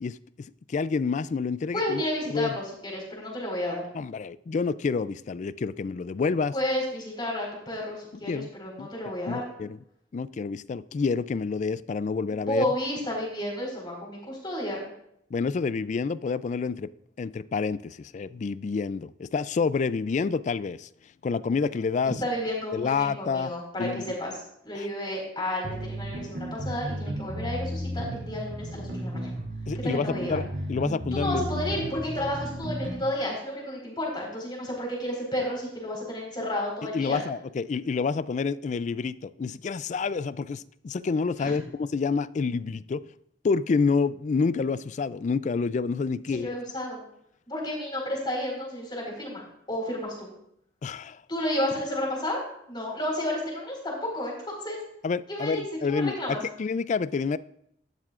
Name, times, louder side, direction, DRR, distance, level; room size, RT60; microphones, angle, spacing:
voice 1, 0.0-2.0 2.3-2.6 3.9-6.5 8.2-8.5 8.8-8.9 9.3-9.8 10.1-12.6 15.3-16.9 17.2-20.9 21.2-22.2 22.7-23.5 23.8-24.2 24.8-24.9 29.7-31.4 36.8-43.0 43.4-46.6 50.8-51.2 55.0-57.4, left 4 dB, 40° left, 0.3 m, -28 dB
voice 2, 1.7-3.8 6.5-9.4 12.3-14.8 22.0-24.3 24.6-29.3 29.8-30.4 31.1-37.2 41.4-41.5 46.3-47.0 47.5-49.4 49.7-50.3 51.3-52.4 52.7-54.8 55.3-56.4, left 1 dB, 25° left, 4.4 m, -31 dB
sound 1, 25.6-33.0, equal, 85° right, 2.5 m, -33 dB
12.5 x 12.0 x 2.5 m
head